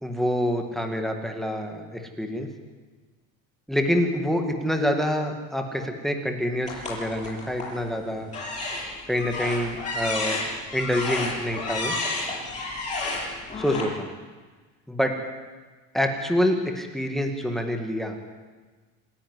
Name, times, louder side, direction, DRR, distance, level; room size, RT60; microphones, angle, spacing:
voice 1, 0.0-2.5 3.7-8.3 9.1-10.4 10.7-12.0 13.6-14.1 14.9-15.1 15.9-18.2, equal, ahead, 4 dB, 2.1 m, -26 dB
sound 1, 6.6-7.8 8.3-13.8, left 3 dB, 20° left, 8.0 m, -31 dB
27.5 x 10.5 x 9.9 m, 1.4 s
cardioid pair, 145°, 39 cm